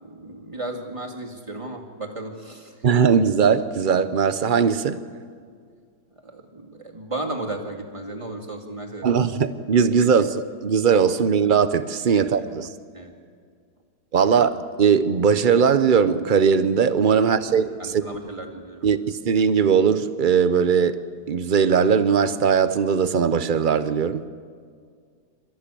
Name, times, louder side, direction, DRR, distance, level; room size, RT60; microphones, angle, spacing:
voice 1, 0.0-2.7 6.2-9.1 12.1-12.5 12.9-13.1 14.3-14.5 17.5-18.9, right 2 dB, 15° right, 2.3 m, -35 dB
voice 2, 2.8-5.0 9.0-12.7 14.1-18.0 18.8-21.0 21.3-24.2, right 6 dB, 60° right, 0.5 m, -19 dB
28.0 x 14.0 x 8.5 m
omnidirectional pair, 1.9 m